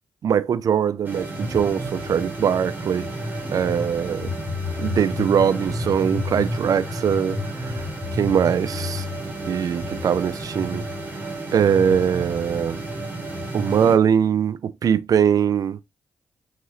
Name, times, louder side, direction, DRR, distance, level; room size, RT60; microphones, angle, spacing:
voice 1, 0.2-3.0 3.5-4.3 4.8-7.8 8.1-10.8 11.5-12.8 13.5-15.8, right 8 dB, 60° right, 0.4 m, -22 dB
sound 1, 1.0-14.0, equal, 25° right, 1.9 m, -30 dB
3.7 x 3.0 x 2.6 m
supercardioid pair, 60°, 7 cm